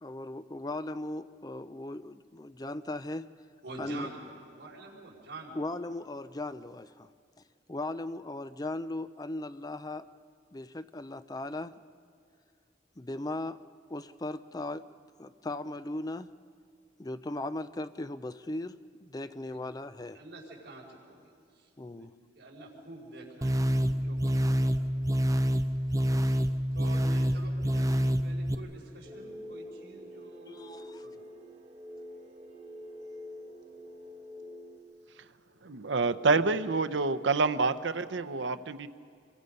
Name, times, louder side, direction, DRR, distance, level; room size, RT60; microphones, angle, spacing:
voice 1, 0.0-3.3 3.8-4.1 5.6-7.1 7.7-10.1 10.5-11.8 13.0-13.6 13.9-14.9 15.2-16.3 17.0-20.2 21.8-22.1 30.5-31.0, left 2 dB, 20° left, 12 dB, 0.5 m, -38 dB
voice 2, 3.6-5.6 19.5-19.6 19.9-22.1 22.3-24.9 25.9-26.4 26.7-31.2, right 2 dB, 70° right, -3 dB, 5.0 m, -47 dB
sound 1, 23.4-28.5, equal, 20° right, 0.7 m, -27 dB
sound 2, 29.0-34.8, left 1 dB, 45° right, 3.1 m, -46 dB
voice 3, 35.6-38.9, right 3 dB, 90° right, 12 dB, 0.8 m, -27 dB
27.5 x 22.5 x 5.4 m, 2.3 s
head